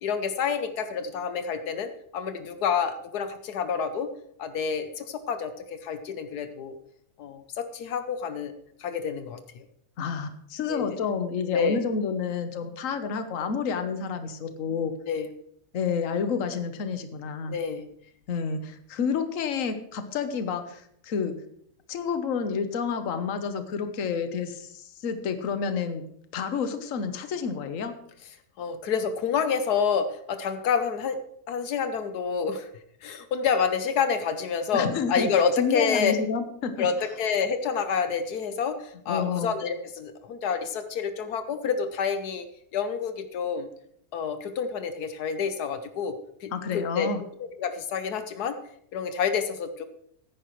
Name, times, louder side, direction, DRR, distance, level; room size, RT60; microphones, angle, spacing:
voice 1, 0.0-4.1 4.4-6.8 7.2-8.5 8.8-9.6 10.7-11.0 11.5-11.8 15.1-15.3 17.5-17.9 28.6-31.2 31.5-32.7 33.0-36.1 36.8-42.5 42.7-43.7 44.1-47.1 47.4-48.6 48.9-49.8, left 6 dB, 85° left, 9 dB, 1.4 m, -28 dB
voice 2, 10.0-14.9 15.7-17.6 18.3-21.4 21.9-26.1 26.3-28.0 34.7-35.3 35.6-36.9 39.1-39.5 46.5-47.2, left 6 dB, 60° left, 9 dB, 1.3 m, -29 dB
15.0 x 10.0 x 3.1 m, 0.68 s
omnidirectional pair, 1.7 m